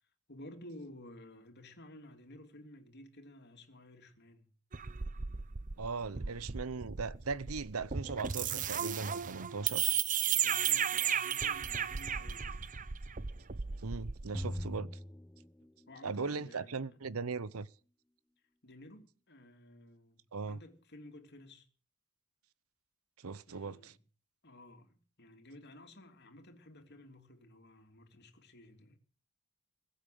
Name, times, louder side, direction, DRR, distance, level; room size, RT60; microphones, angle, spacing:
voice 1, 0.3-4.6 6.0-6.6 10.3-12.7 15.9-17.0 18.6-21.7 23.5-24.0 24.4-29.0, left 1 dB, 50° left, 3.2 m, -54 dB
sound 1, 4.7-14.8, right 8 dB, 35° right, 0.7 m, -35 dB
voice 2, 5.8-9.9 13.8-14.9 16.0-17.7 20.3-20.6 23.2-23.9, right 4 dB, 75° right, 0.8 m, -39 dB
sound 2, 14.3-16.1, equal, 10° left, 0.7 m, -41 dB
21.0 x 8.7 x 7.8 m
head